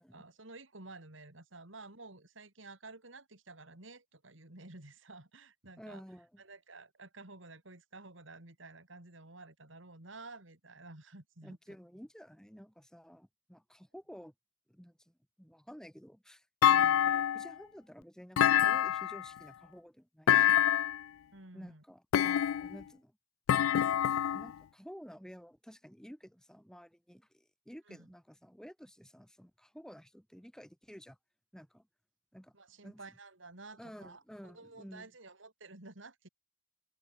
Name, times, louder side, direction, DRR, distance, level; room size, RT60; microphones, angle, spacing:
voice 1, 0.0-6.0 6.4-11.6 16.7-17.1 21.3-21.8 27.9-28.1 32.5-36.3, right 3 dB, 65° right, 3.3 m, -52 dB
voice 2, 5.8-6.4 11.4-14.3 14.7-16.5 17.0-20.8 21.5-23.2 24.3-31.2 31.5-31.9 32.3-32.5 32.8-33.0 33.8-35.1, equal, 5° left, 3.0 m, -52 dB
Thump thud, 16.6-17.5 18.4-19.3 20.3-21.0 22.1-22.8 23.5-24.5, left 10 dB, 80° left, 0.3 m, -26 dB
head